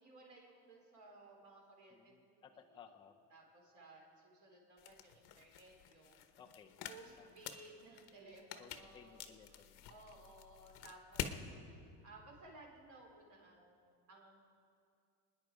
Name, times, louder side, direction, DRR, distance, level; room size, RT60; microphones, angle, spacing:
voice 1, 0.0-2.4 2.7-2.9 3.3-6.2 6.9-9.2 9.5-9.6 9.9-11.4 12.0-14.4, right 2 dB, 35° right, -1 dB, 3.4 m, -59 dB
voice 2, 1.9-3.1 6.4-6.8 7.2-7.4 8.6-9.9, left 7 dB, 10° left, 3 dB, 0.5 m, -60 dB
sound 1, 4.8-11.4, left 10 dB, 55° left, 1.0 m, -48 dB
26.5 x 10.0 x 4.8 m, 2.4 s
cardioid pair, 165°, 48 cm